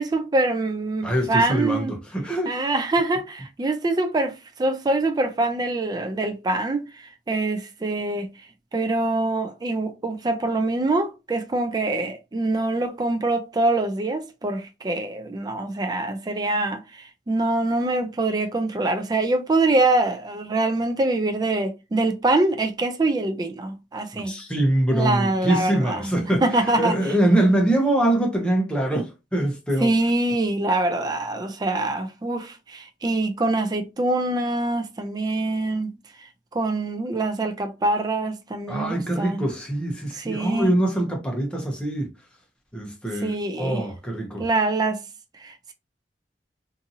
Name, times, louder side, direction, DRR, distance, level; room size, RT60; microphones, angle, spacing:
voice 1, 0.0-1.9 2.5-4.3 4.6-6.9 7.3-8.3 8.7-16.8 17.3-24.3 24.9-26.1 26.4-27.0 29.8-35.9 36.5-39.4 40.1-40.7 43.2-43.8 44.4-45.0 45.4-45.7, right 2 dB, 20° right, 0.3 m, -24 dB
voice 2, 1.0-2.5 24.1-30.0 38.7-42.1 42.7-44.4, right 1 dB, 5° left, 0.7 m, -23 dB
2.6 x 2.6 x 2.7 m
head